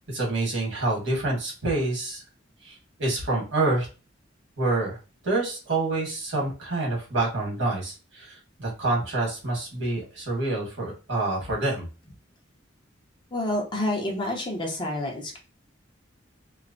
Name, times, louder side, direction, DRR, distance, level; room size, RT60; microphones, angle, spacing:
voice 1, 0.1-2.2 2.6-3.9 4.6-5.0 5.2-11.9, right 2 dB, 80° right, -2 dB, 1.5 m, -27 dB
voice 2, 13.3-15.4, left 1 dB, 25° left, -1 dB, 0.8 m, -28 dB
3.0 x 2.1 x 2.6 m, 0.32 s
head